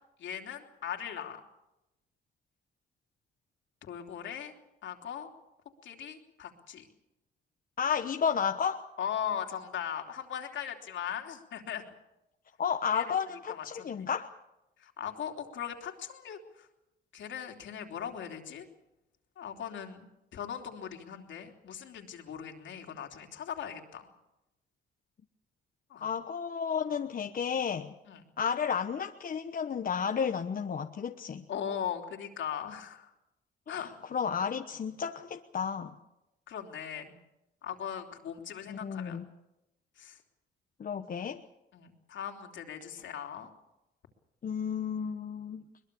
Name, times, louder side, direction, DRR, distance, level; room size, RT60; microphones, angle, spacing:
voice 1, 0.2-1.4 3.8-4.5 4.8-5.3 5.8-6.8 9.0-11.8 12.9-13.0 13.5-14.1 14.8-16.7 17.1-18.7 19.4-24.1 25.9-26.1 28.1-28.2 31.5-33.1 33.7-33.9 36.5-37.2 37.6-39.2 40.0-40.2 41.7-43.5, left 8 dB, 70° left, 3 dB, 3.3 m, -39 dB
voice 2, 7.8-8.8 12.6-14.3 26.0-27.9 28.4-31.4 33.7-35.9 38.7-39.3 40.8-41.4 44.4-45.6, left 7 dB, 45° left, 5 dB, 1.1 m, -32 dB
22.5 x 21.0 x 7.0 m, 0.92 s
cardioid pair, 90°, 20 cm